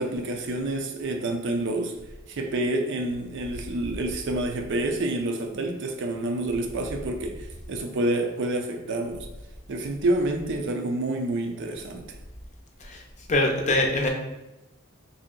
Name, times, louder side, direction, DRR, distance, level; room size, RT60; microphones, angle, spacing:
voice 1, 0.0-1.9 2.3-7.4 7.7-9.3 9.7-12.0, right 1 dB, 60° right, 0.5 m, -28 dB
voice 2, 13.3-14.1, left 2 dB, 35° left, 0.6 m, -23 dB
3.2 x 2.7 x 3.7 m
head